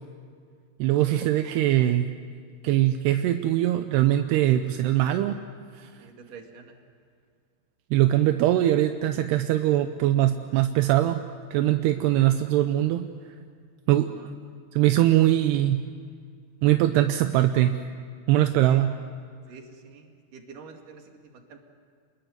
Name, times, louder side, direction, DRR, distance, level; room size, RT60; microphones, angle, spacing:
voice 1, 0.8-2.1 2.6-5.4 5.8-5.9 7.9-11.2 11.5-13.1 13.9-14.1 14.7-15.8 16.6-17.8 18.3-18.9, right 13 dB, 80° right, 7 dB, 2.8 m, -22 dB
voice 2, 6.0-6.8 13.9-14.3 18.7-18.9 19.5-21.6, right 5 dB, 55° right, 3 dB, 3.7 m, -47 dB
28.5 x 21.0 x 7.9 m, 2.1 s
omnidirectional pair, 4.7 m